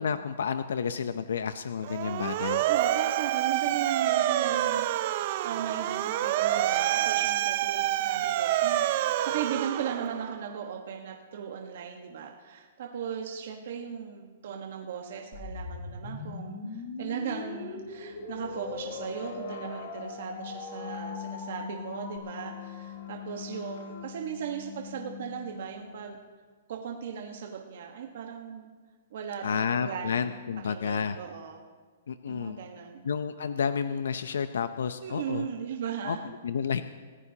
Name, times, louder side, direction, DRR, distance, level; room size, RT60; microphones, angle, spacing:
voice 1, 0.0-2.6 29.4-31.2 32.1-32.6 33.0-35.5 36.1-36.2 36.4-36.8, left 6 dB, 90° left, 10 dB, 0.6 m, -30 dB
Motor vehicle (road) / Siren, 1.8-10.4, right 13 dB, 35° right, 0.5 m, -27 dB
voice 2, 2.7-26.2 26.7-28.7 29.1-30.4 30.7-31.6 32.3-33.1 35.0-36.3, right 8 dB, 55° right, 1 dB, 1.3 m, -37 dB
sound 1, 15.3-22.2, left 4 dB, 30° left, 1.8 m, -40 dB
sound 2, 17.4-26.2, left 7 dB, 65° left, 5.3 m, -43 dB
27.5 x 15.0 x 2.9 m, 1.5 s
hypercardioid pair, 170°, 0 cm